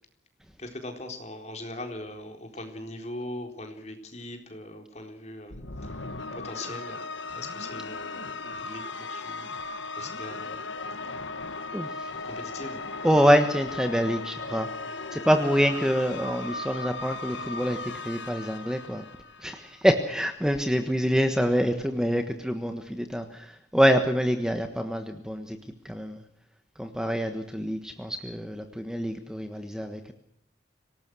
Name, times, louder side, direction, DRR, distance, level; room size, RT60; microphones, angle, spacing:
voice 1, 0.6-10.6 12.1-12.8, left 1 dB, 35° left, 4 dB, 4.0 m, -41 dB
sound 1, 5.5-19.9, left 3 dB, 80° left, 1.7 m, -37 dB
voice 2, 13.0-14.7 15.1-17.8 18.0-19.0 19.4-25.6 25.8-26.2 26.8-30.1, equal, 5° right, 6 dB, 1.3 m, -25 dB
26.0 x 18.5 x 6.3 m, 0.69 s
head